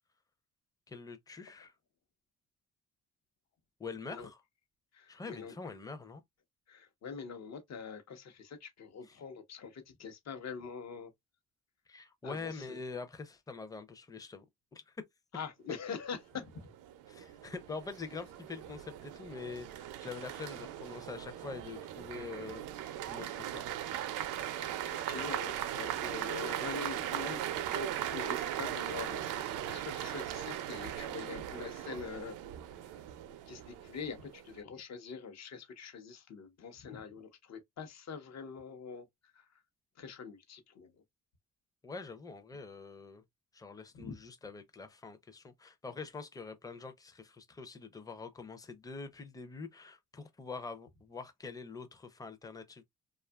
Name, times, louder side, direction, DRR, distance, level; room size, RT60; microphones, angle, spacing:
voice 1, 0.9-1.7 3.8-4.4 5.1-6.2 9.1-9.2 11.9-14.4 14.7-14.9 17.1-23.6 24.0-24.2 41.8-43.2 43.5-52.8, left 4 dB, 10° left, 0.5 m, -45 dB
voice 2, 4.9-5.5 6.7-11.1 12.2-12.8 15.3-16.7 24.9-32.4 32.8-33.0 33.5-39.1 39.3-39.6 40.0-40.9 43.9-44.1, left 6 dB, 60° left, 0.9 m, -44 dB
sound 1, 16.4-34.6, right 11 dB, 90° right, 0.5 m, -39 dB
2.7 x 2.4 x 2.2 m
cardioid pair, 90°, 30 cm